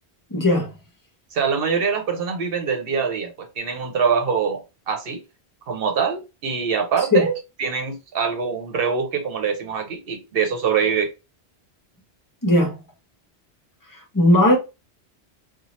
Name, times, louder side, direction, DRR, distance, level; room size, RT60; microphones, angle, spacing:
voice 1, 0.3-0.7 7.1-7.3 12.4-12.7 14.1-14.6, left 1 dB, 20° left, 0.8 m, -17 dB
voice 2, 1.3-5.2 5.7-11.1, right 6 dB, 65° right, 0.9 m, -24 dB
2.7 x 2.3 x 3.0 m
omnidirectional pair, 1.1 m